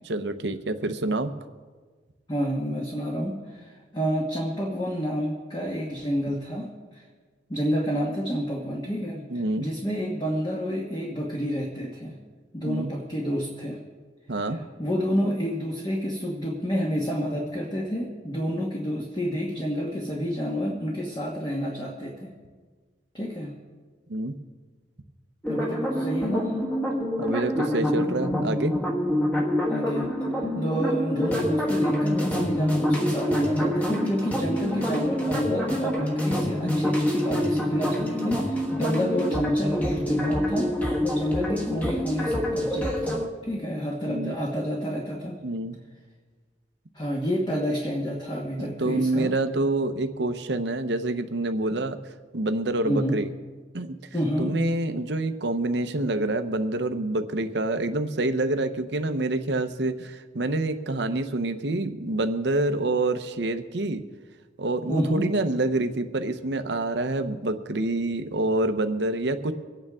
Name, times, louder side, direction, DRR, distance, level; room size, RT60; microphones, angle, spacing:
voice 1, 0.1-1.3 9.3-9.7 12.6-12.9 14.3-14.6 24.1-24.3 27.2-28.7 44.1-44.4 45.4-45.8 48.6-52.0 52.3-53.3 53.7-54.0 54.4-64.0 64.6-69.5, right 2 dB, 70° right, 8 dB, 0.8 m, -27 dB
voice 2, 2.3-7.0 7.5-9.2 9.6-12.1 12.5-13.8 14.5-22.3 23.1-23.5 25.5-26.5 29.7-30.1 30.3-40.7 41.0-45.4 46.9-49.3 52.8-53.2 54.1-54.5 64.9-65.3, equal, 25° left, -2 dB, 1.4 m, -29 dB
sound 1, 25.4-43.3, left 1 dB, 10° left, 1.4 m, -26 dB
25.0 x 9.1 x 3.6 m, 1.5 s
head